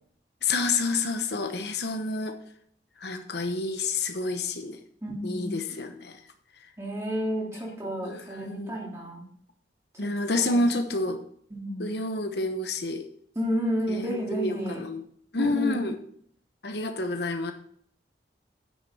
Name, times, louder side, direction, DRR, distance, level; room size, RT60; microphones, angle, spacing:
voice 1, 0.4-2.3 3.0-4.8 5.2-6.2 8.0-8.8 10.0-11.2 11.8-13.0 13.9-15.0 15.3-16.0 16.6-17.5, left 3 dB, 60° left, 7 dB, 0.9 m, -29 dB
voice 2, 5.0-5.6 6.8-9.2 9.9-10.1 10.5-10.6 11.5-11.9 13.3-14.8 15.4-15.9, equal, 15° right, -3 dB, 2.9 m, -31 dB
9.7 x 6.4 x 5.6 m, 0.62 s
head